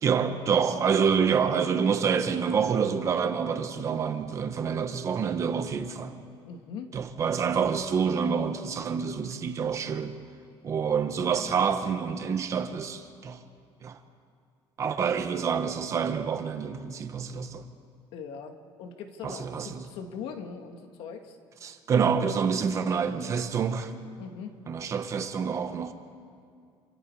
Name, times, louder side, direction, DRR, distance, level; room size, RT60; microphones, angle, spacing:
voice 1, 0.0-6.1 6.9-10.1 10.6-13.4 13.8-14.0 14.8-17.7 19.2-19.9 21.6-23.9 24.7-25.9, right 6 dB, 35° right, 1.2 m, -27 dB
voice 2, 0.6-0.9 6.4-6.9 15.0-15.2 18.1-21.4 24.2-24.6, left 6 dB, 75° left, 2.1 m, -41 dB
28.0 x 26.0 x 4.8 m
cardioid pair, 175°, 9 cm